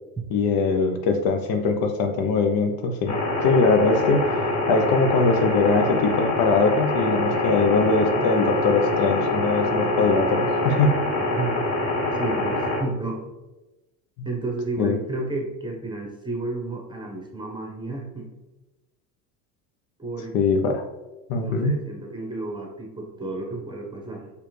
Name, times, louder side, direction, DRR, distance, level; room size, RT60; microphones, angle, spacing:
voice 1, 0.3-10.9 14.8-15.0 20.3-20.8 21.3-21.7, left 4 dB, 55° left, 4 dB, 0.7 m, -22 dB
sound 1, 3.1-12.8, left 2 dB, 40° left, 1.1 m, -25 dB
voice 2, 12.1-13.3 14.2-18.3 20.0-20.4 21.4-24.3, right 2 dB, 10° right, 0 dB, 1.1 m, -32 dB
4.7 x 3.3 x 3.2 m, 1.1 s
supercardioid pair, 95°, 42 cm